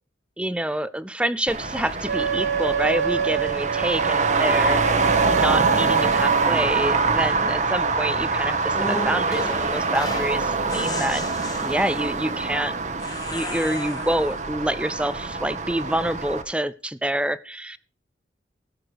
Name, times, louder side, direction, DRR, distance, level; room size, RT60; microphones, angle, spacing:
voice 1, 0.4-11.2 11.6-12.8 13.3-17.8, right 1 dB, 5° right, 17 dB, 0.4 m, -27 dB
Traffic noise roadway noise, 1.5-16.4, right 4 dB, 40° right, 1.1 m, -24 dB
Wind instrument woodwind instrument, 2.1-6.5, right 7 dB, 65° right, 0.6 m, -26 dB
sound 1, 8.7-10.4 10.7-12.2 13.0-14.4, left 2 dB, 20° left, 1.5 m, -34 dB
18.0 x 6.6 x 4.7 m, 0.38 s
head